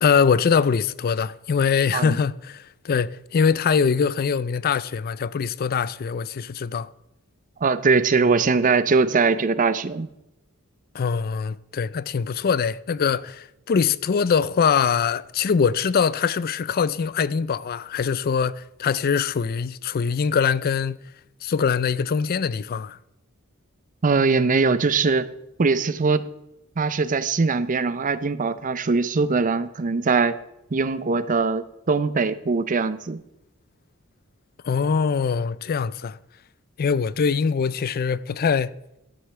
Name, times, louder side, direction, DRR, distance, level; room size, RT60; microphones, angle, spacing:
voice 1, 0.0-6.9 10.9-21.0 21.4-23.0 34.6-36.2 36.8-38.7, left 6 dB, 45° left, 0.4 m, -23 dB
voice 2, 7.6-10.1 24.0-25.3 25.6-26.3 26.8-30.4 30.7-33.2, right 4 dB, 35° right, 0.5 m, -21 dB
12.5 x 10.0 x 3.3 m
head